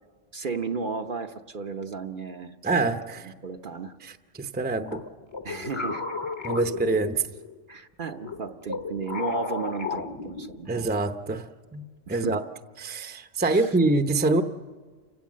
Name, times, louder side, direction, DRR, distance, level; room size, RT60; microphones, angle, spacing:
voice 1, 0.3-2.6 3.4-3.9 5.4-6.0 7.7-10.7 12.1-12.4 13.4-13.8, right 5 dB, 50° right, 5 dB, 0.9 m, -34 dB
voice 2, 2.6-3.3 4.0-5.0 6.4-7.2 10.7-12.4 12.8-14.4, right 3 dB, 10° right, 7 dB, 0.7 m, -25 dB
sound 1, 4.9-7.6 8.2-10.9, left 4 dB, 25° left, 0.9 m, -34 dB
29.5 x 17.0 x 7.4 m, 1.5 s
omnidirectional pair, 1.2 m